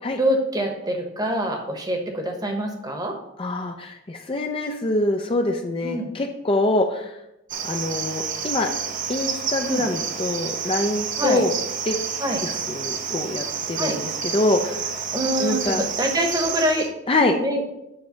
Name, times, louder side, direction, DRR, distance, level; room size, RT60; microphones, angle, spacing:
voice 1, 0.2-3.1 5.8-6.1 9.6-9.8 11.2-11.4 12.2-12.4 13.8-14.0 15.1-16.9 17.4-17.6, right 1 dB, 20° right, 3 dB, 1.0 m, -25 dB
voice 2, 3.4-7.1 7.6-8.7 9.1-11.5 11.9-12.0 12.4-14.9 15.4-15.8 17.1-17.4, left 2 dB, 25° left, 4 dB, 0.5 m, -25 dB
Cricket, 7.5-16.9, right 6 dB, 40° right, 0.6 m, -29 dB
8.8 x 3.2 x 5.7 m, 0.87 s
head